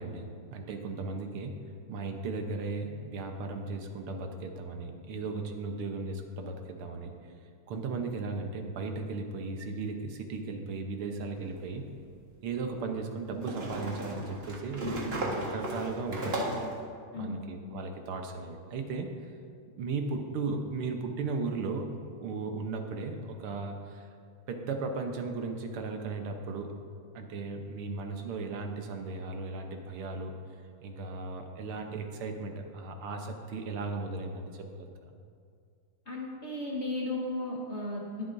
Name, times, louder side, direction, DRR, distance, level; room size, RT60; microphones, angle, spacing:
voice 1, 0.0-1.6 1.9-7.1 7.7-11.8 12.4-16.6 17.1-19.3 19.8-21.9 22.2-24.1 24.5-26.7 27.1-30.4 30.8-35.1, right 3 dB, 80° right, 4 dB, 1.8 m, -36 dB
sound 1, 11.4-11.5 13.4-16.8, right 1 dB, 35° right, 1.3 m, -35 dB
voice 2, 17.1-17.5 36.1-38.2, left 1 dB, 40° left, -4 dB, 1.3 m, -35 dB
20.5 x 7.8 x 2.6 m, 2.2 s
omnidirectional pair, 2.4 m